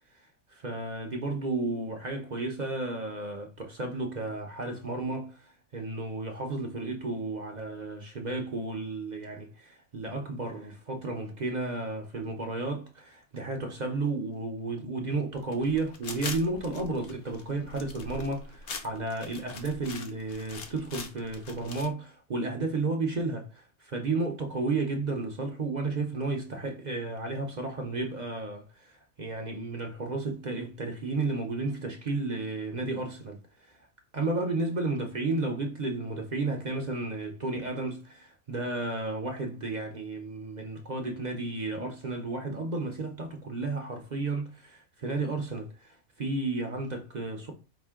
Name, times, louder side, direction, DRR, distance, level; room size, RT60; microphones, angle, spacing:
voice 1, 0.5-33.8 34.1-47.5, right 3 dB, 45° right, 0.6 m, -33 dB
sound 1, 15.4-21.9, left 4 dB, 55° left, 0.8 m, -43 dB
5.0 x 2.6 x 3.6 m
omnidirectional pair, 1.4 m